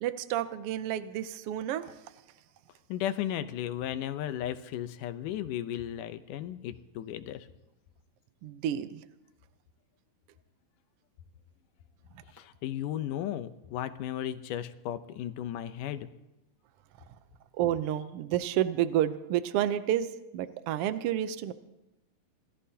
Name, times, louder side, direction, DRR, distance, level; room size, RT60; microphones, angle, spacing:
voice 1, 0.0-2.0 8.4-9.0 12.1-12.2 17.5-21.5, right 11 dB, 90° right, 11 dB, 1.3 m, -30 dB
voice 2, 2.9-7.5 12.3-16.1, left 11 dB, 90° left, 10 dB, 2.4 m, -35 dB
27.0 x 18.0 x 2.8 m, 0.93 s
omnidirectional pair, 3.6 m